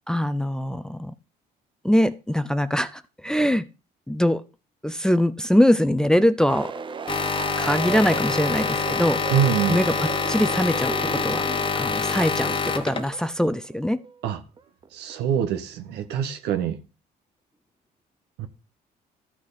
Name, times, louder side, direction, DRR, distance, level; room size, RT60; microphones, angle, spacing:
voice 1, 0.1-1.1 1.8-3.7 4.1-4.4 4.8-6.7 7.6-9.2 9.7-11.5 11.8-14.0, equal, 5° left, 0.5 m, -22 dB
sound 1, 6.5-15.2, right 6 dB, 30° right, 0.7 m, -35 dB
sound 2, 7.1-13.3, left 5 dB, 30° left, 1.0 m, -26 dB
voice 2, 9.3-9.8 14.2-14.4 14.9-16.8 18.4-18.5, right 9 dB, 85° right, 1.3 m, -24 dB
13.0 x 6.2 x 4.1 m
cardioid pair, 110°, 17 cm